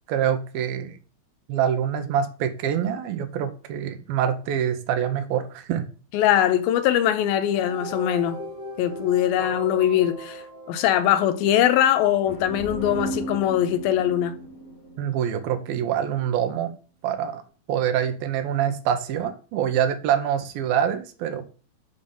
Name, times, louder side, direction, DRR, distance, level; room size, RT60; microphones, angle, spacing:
voice 1, 0.1-1.0 1.5-5.8 15.0-16.7 17.0-17.4 17.7-21.4, right 9 dB, 80° right, 2.7 m, -25 dB
voice 2, 6.1-8.4 8.8-10.4 10.7-14.4, left 11 dB, 80° left, 2.6 m, -21 dB
sound 1, 7.4-11.7, right 1 dB, 15° left, 1.4 m, -38 dB
sound 2, 12.2-15.9, right 2 dB, 55° left, 1.0 m, -36 dB
7.2 x 5.3 x 7.0 m
omnidirectional pair, 4.3 m